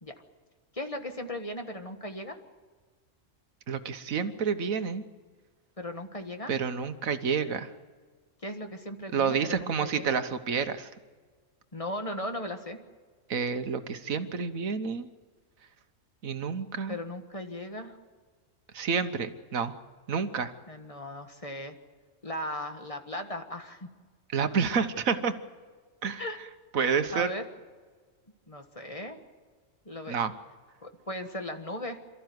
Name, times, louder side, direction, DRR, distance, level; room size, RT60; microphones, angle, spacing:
voice 1, 0.7-2.4 5.8-6.5 8.4-10.2 11.7-12.8 16.9-18.0 20.7-21.8 22.2-23.9 26.2-26.4 26.8-27.4 28.5-29.2 29.9-30.2 30.8-32.0, left 1 dB, 25° left, 5 dB, 1.6 m, -37 dB
voice 2, 3.7-5.0 6.5-7.7 9.1-10.9 13.3-15.1 16.2-17.0 18.7-19.8 20.1-20.5 24.3-25.3 26.0-26.2 26.7-27.3 30.1-30.3, right 6 dB, 85° right, 10 dB, 1.6 m, -29 dB
28.0 x 14.0 x 9.5 m, 1.5 s
omnidirectional pair, 1.4 m